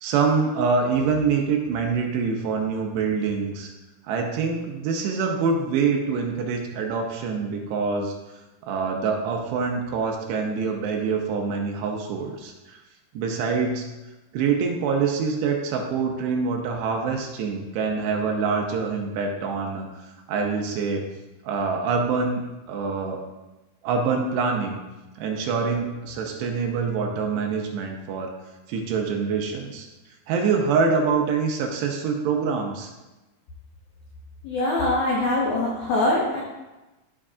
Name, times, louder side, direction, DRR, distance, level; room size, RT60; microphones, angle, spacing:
voice 1, 0.0-3.7 4.1-8.1 8.6-12.8 13.1-13.9 14.3-20.0 20.3-21.1 21.5-23.2 23.8-24.8 25.2-28.3 28.7-29.9 30.3-32.9, right 5 dB, 80° right, 2 dB, 2.8 m, -25 dB
voice 2, 34.4-36.4, left 2 dB, 85° left, -4 dB, 1.7 m, -23 dB
14.0 x 5.9 x 2.4 m, 1.1 s
omnidirectional pair, 5.3 m